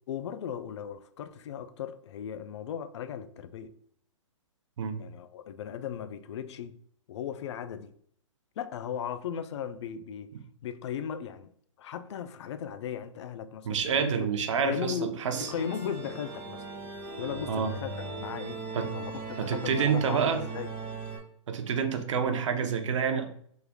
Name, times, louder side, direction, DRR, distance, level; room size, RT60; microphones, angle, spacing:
voice 1, 0.1-3.7 5.0-6.7 7.1-7.9 8.6-10.3 10.6-11.5 11.8-14.3 14.6-15.1 15.4-16.6 17.2-17.9 18.2-18.6 18.9-20.7, left 8 dB, 60° left, 0.4 m, -37 dB
voice 2, 13.6-15.5 17.5-17.7 18.7-18.9 19.4-20.4 21.5-23.2, right 6 dB, 70° right, 0.6 m, -28 dB
sound 1, 15.3-21.2, right 2 dB, 40° right, 1.2 m, -39 dB
3.5 x 3.2 x 2.2 m
hypercardioid pair, 140°, 16 cm